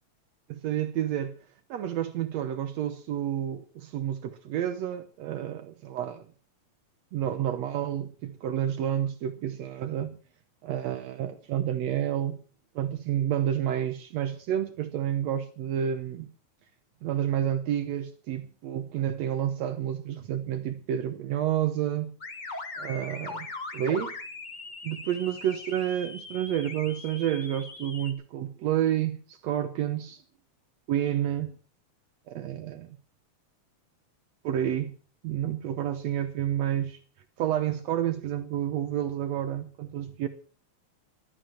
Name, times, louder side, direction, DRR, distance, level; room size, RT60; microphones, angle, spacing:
voice 1, 0.5-1.3 1.7-6.3 7.1-10.2 10.6-12.4 12.8-16.3 17.0-22.2 22.8-23.5 23.7-24.2 24.8-30.2 30.9-31.6 32.3-33.0 34.4-34.9 35.2-37.0 37.4-40.3, right 10 dB, 70° right, 2.0 m, -29 dB
sound 1, 22.2-28.1, left 3 dB, 65° left, 0.4 m, -40 dB
15.5 x 12.5 x 4.5 m
omnidirectional pair, 3.4 m